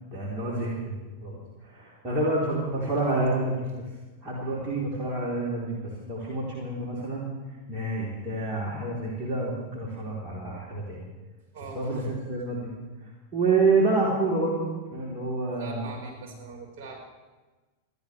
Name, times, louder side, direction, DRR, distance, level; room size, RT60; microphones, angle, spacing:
voice 1, 0.1-1.4 1.6-3.7 4.2-7.3 7.7-11.0 11.7-12.7 13.3-15.9, right 3 dB, 30° right, -6 dB, 3.7 m, -28 dB
voice 2, 15.6-17.0, right 4 dB, 45° right, 0 dB, 4.9 m, -42 dB
28.5 x 11.5 x 3.4 m, 1.2 s
figure-of-eight pair, 90°, 0 cm